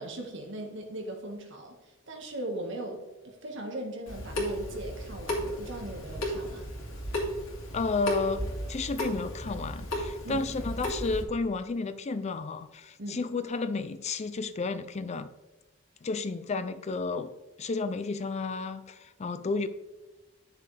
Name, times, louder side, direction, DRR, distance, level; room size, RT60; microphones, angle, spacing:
voice 1, 0.0-1.8 2.1-6.7 10.2-10.4 13.0-13.2, right 1 dB, 65° right, 1 dB, 1.7 m, -39 dB
Water tap faucet / Sink (filling or washing) / Drip, 4.1-11.2, equal, 85° left, 2.5 m, -34 dB
voice 2, 7.7-15.3 16.0-17.3 17.6-19.7, left 3 dB, 35° left, 12 dB, 0.4 m, -32 dB
10.5 x 6.6 x 3.4 m, 1.1 s
head